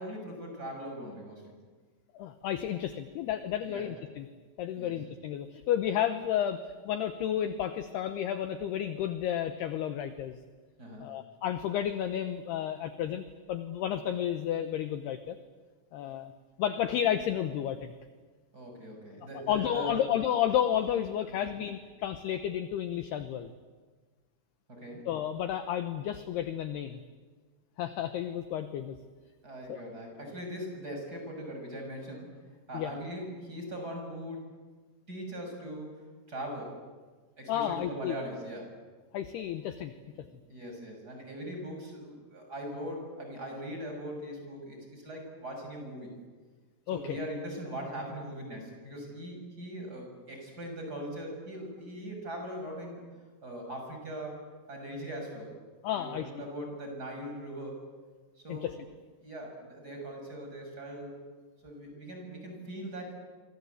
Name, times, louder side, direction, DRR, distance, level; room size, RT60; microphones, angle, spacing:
voice 1, 0.0-1.5 3.6-3.9 4.7-4.9 10.8-11.1 18.5-20.0 21.4-21.5 24.7-25.0 29.4-32.3 32.7-34.5 35.1-35.9 36.3-36.7 37.4-38.7 40.0-40.1 40.5-46.2 46.9-53.0 53.4-54.4 54.7-55.5 55.9-57.8 58.4-58.7 59.2-61.2 61.6-63.2, equal, 20° right, 2 dB, 6.5 m, -40 dB
voice 2, 2.1-4.3 4.6-6.6 6.9-10.4 11.0-15.4 15.9-16.3 16.6-17.9 19.5-23.5 25.1-27.0 27.8-29.0 29.7-29.8 32.7-32.9 37.5-38.2 39.1-39.9 46.9-47.2 55.8-56.3 58.5-58.7, left 10 dB, 80° left, 9 dB, 2.4 m, -31 dB
28.5 x 24.5 x 8.2 m, 1.4 s
omnidirectional pair, 5.9 m